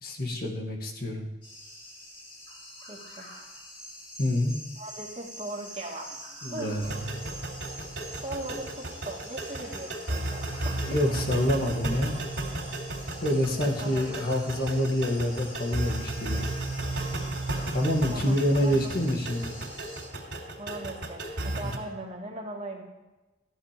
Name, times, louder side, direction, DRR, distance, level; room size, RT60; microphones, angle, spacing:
voice 1, 0.0-1.3 4.2-4.6 6.4-7.1 10.8-12.2 13.2-16.4 17.7-19.5 21.6-21.7, left 1 dB, 55° left, 1 dB, 2.1 m, -27 dB
sound 1, 1.4-20.1, equal, 30° left, 4.2 m, -46 dB
voice 2, 2.9-3.3 4.8-6.2 6.5-6.8 8.2-10.7 13.5-14.2 18.1-19.0 20.6-22.8, right 2 dB, 35° right, -1 dB, 2.5 m, -39 dB
sound 2, 6.8-21.8, right 2 dB, 80° right, 3.2 m, -34 dB
14.0 x 10.5 x 5.3 m, 1.1 s
head